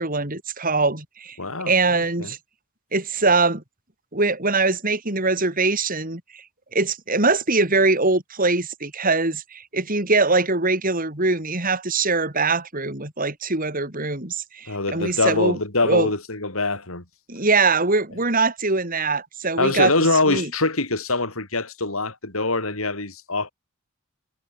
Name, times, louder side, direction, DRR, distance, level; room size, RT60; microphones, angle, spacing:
voice 1, 0.0-1.4 1.7-2.4 2.9-3.6 4.1-6.4 6.7-15.6 15.8-16.1 17.3-19.9 20.3-20.5, right 3 dB, 40° right, 4.8 m, -22 dB
voice 2, 1.4-2.3 14.7-17.0 19.6-23.5, left 2 dB, 75° left, 5.9 m, -24 dB
head